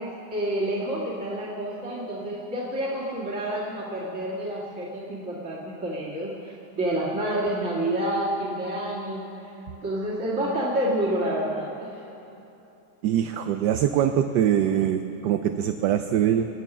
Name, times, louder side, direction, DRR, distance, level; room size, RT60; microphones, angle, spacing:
voice 1, 0.0-9.5 9.8-12.0, right 1 dB, 40° right, -7 dB, 2.4 m, -29 dB
voice 2, 13.0-16.5, right 10 dB, 70° right, 7 dB, 1.2 m, -23 dB
25.5 x 9.1 x 6.1 m, 3.0 s
omnidirectional pair, 2.1 m